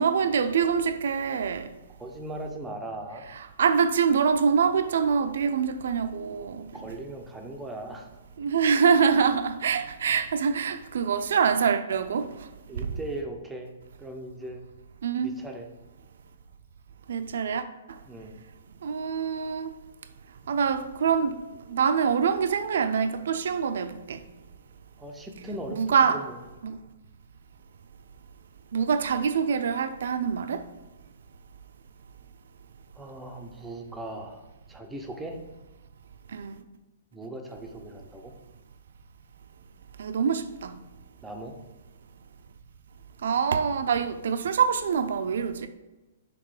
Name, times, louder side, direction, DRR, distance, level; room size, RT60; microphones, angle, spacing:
voice 1, 0.0-1.7 3.6-6.7 8.4-12.3 12.8-12.9 15.0-15.3 17.1-17.6 18.8-19.7 20.5-21.4 21.7-24.2 25.8-26.2 26.6-26.8 28.7-30.6 36.3-36.5 40.0-40.8 43.2-45.7, right 6 dB, 60° right, 0.4 m, -25 dB
voice 2, 2.0-3.2 6.7-8.1 12.7-13.7 14.0-14.6 15.2-15.7 18.0-18.4 25.0-26.4 32.9-35.4 37.1-38.3 41.2-41.6, right 1 dB, 5° right, 0.5 m, -38 dB
5.9 x 3.6 x 4.8 m
hypercardioid pair, 175°, 0 cm